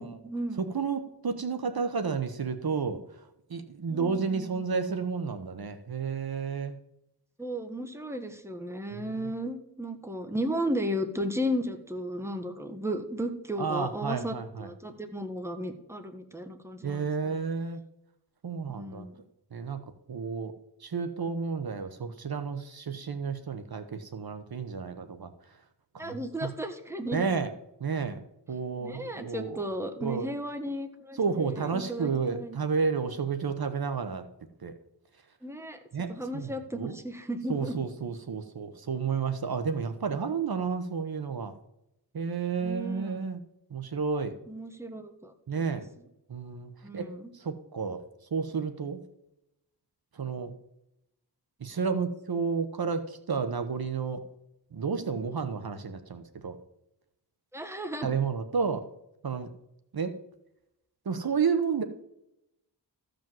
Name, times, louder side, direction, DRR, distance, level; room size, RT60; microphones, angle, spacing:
voice 1, 0.0-0.6 3.9-4.7 7.4-17.3 18.7-19.2 26.0-27.2 28.8-32.6 35.4-35.8 36.1-37.8 42.6-43.2 44.5-45.8 46.8-47.3 57.5-58.1, equal, 5° right, 6 dB, 1.4 m, -35 dB
voice 2, 0.6-3.0 3.5-6.8 8.9-9.3 13.6-14.7 16.8-17.8 18.4-19.1 19.5-19.8 20.1-20.5 20.8-25.3 25.9-26.5 27.1-27.5 27.8-28.2 28.5-29.6 30.0-30.3 31.1-34.2 34.6-34.7 35.9-37.0 37.5-41.5 42.1-43.4 43.7-44.3 45.5-45.8 46.3-47.1 47.3-48.0 48.3-49.0 50.1-50.5 51.6-54.2 54.7-56.6 58.0-58.9 59.2-59.5 59.9-60.2 61.0-61.8, right 5 dB, 60° right, 9 dB, 1.0 m, -31 dB
14.5 x 5.2 x 7.6 m, 0.83 s
wide cardioid pair, 80°, 41 cm